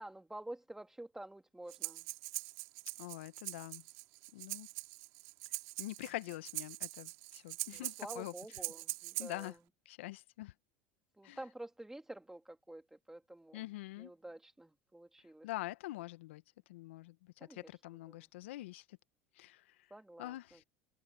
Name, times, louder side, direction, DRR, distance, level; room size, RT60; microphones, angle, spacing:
voice 1, 0.0-2.1 7.7-9.5 11.2-13.6 14.0-15.5 17.4-17.7 18.1-18.2 19.9-20.6, right 1 dB, 5° right, 2.5 m, -49 dB
Breathing, 1.7-9.5, right 25 dB, 65° right, 2.6 m, -43 dB
voice 2, 3.0-3.8 4.3-4.7 5.5-8.3 9.2-9.6 9.8-10.5 11.2-11.4 13.5-14.1 15.2-19.0 19.3-19.9 20.2-20.6, left 17 dB, 75° left, 1.3 m, -45 dB
hypercardioid pair, 80°, 7 cm